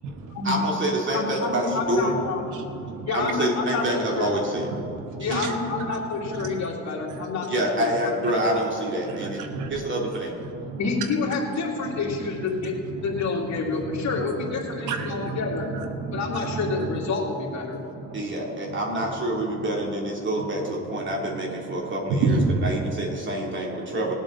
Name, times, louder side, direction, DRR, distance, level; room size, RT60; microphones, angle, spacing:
voice 1, 0.4-2.1 3.1-4.7 5.2-5.4 7.5-9.4 9.7-10.3 18.1-24.1, right 1 dB, 40° right, -1 dB, 2.9 m, -27 dB
voice 2, 1.1-2.4 3.1-4.3 5.2-7.5 7.7-8.2 10.8-12.8 13.0-15.6 16.1-17.8, left 4 dB, 65° left, -2 dB, 2.6 m, -28 dB
voice 3, 2.4-3.1 4.8-5.9 6.3-6.7 7.1-7.2 9.1-9.2 9.5-9.8 10.4-10.8 11.9-12.0 12.2-12.3 12.8-13.3 13.5-14.2 14.7-16.9 17.7-18.8 21.7-21.8 22.1-22.7, right 3 dB, 90° right, 6 dB, 1.2 m, -30 dB
19.5 x 8.3 x 3.9 m, 2.8 s
cardioid pair, 90°, 30 cm